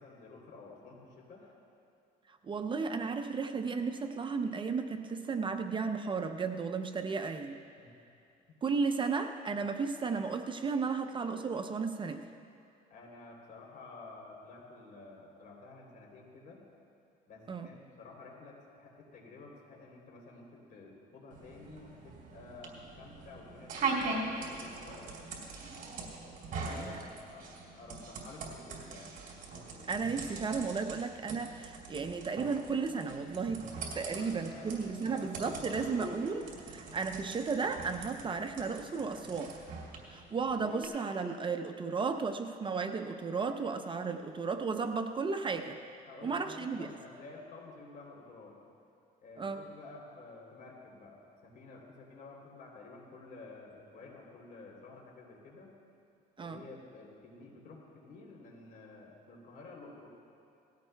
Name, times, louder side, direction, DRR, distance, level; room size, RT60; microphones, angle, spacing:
voice 1, 0.0-1.5 7.8-7.9 8.5-8.6 12.9-16.6 17.3-25.5 26.5-27.5 27.7-29.2 34.1-35.9 46.1-48.5 49.2-55.7 56.4-60.1, left 3 dB, 60° left, -1 dB, 3.3 m, -51 dB
voice 2, 2.4-7.6 8.6-12.2 17.5-17.7 26.6-27.0 29.9-33.7 33.9-39.5 40.1-45.8 46.2-46.9 49.4-49.6 56.4-56.6, right 5 dB, 30° right, 7 dB, 0.6 m, -34 dB
sound 1, 21.3-40.8, right 4 dB, 55° right, 3.2 m, -42 dB
19.0 x 16.0 x 2.3 m, 2.6 s
cardioid pair, 110°, 17 cm